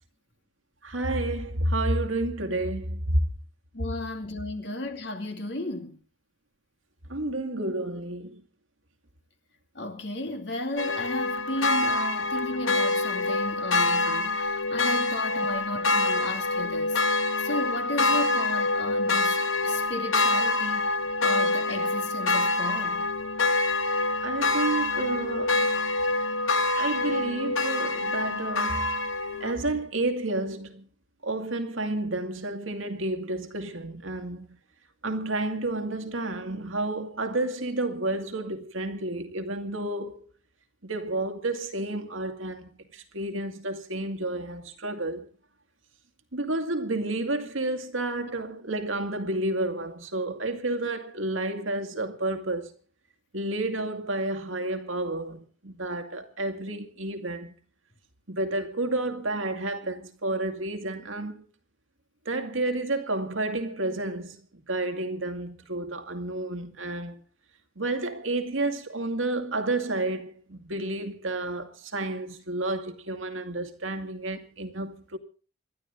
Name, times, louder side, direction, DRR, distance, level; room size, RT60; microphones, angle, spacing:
voice 1, 0.8-3.2 7.1-8.4 24.2-25.7 26.8-28.9 29.4-30.9 31.2-34.6 35.0-40.3 40.8-45.3 46.3-52.7 53.3-57.5 58.3-61.4 62.3-64.4 64.7-67.2 67.8-75.2, right 2 dB, 85° right, 2.3 m, -30 dB
voice 2, 3.7-6.0 9.7-17.0 17.4-23.1, left 2 dB, 60° left, 2.5 m, -34 dB
sound 1, 10.8-29.5, left 2 dB, 80° left, 2.2 m, -26 dB
27.0 x 12.5 x 3.7 m
head